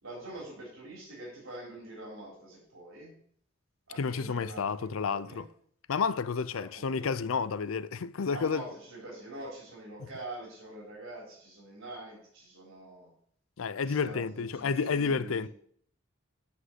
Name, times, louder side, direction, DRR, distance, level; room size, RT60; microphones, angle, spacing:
voice 1, 0.0-3.1 3.9-5.4 6.5-7.1 8.3-13.1 13.8-15.5, right 2 dB, 80° right, 3.7 m, -45 dB
voice 2, 3.9-5.5 5.9-8.6 13.6-15.5, left 5 dB, 85° left, 0.5 m, -30 dB
7.5 x 6.3 x 8.0 m
head